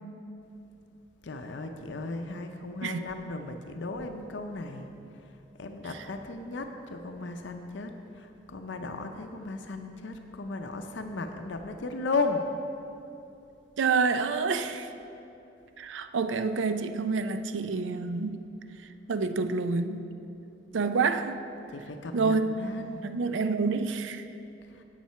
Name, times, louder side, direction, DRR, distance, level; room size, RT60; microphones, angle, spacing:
voice 1, 1.2-12.4 21.7-23.0 24.7-24.8, left 3 dB, 70° left, 5 dB, 0.6 m, -35 dB
voice 2, 13.8-14.9 15.8-18.4 19.1-20.1 20.7-21.4 22.1-22.5 23.0-24.2, right 4 dB, 80° right, 10 dB, 0.4 m, -28 dB
8.2 x 7.3 x 5.7 m, 2.8 s
head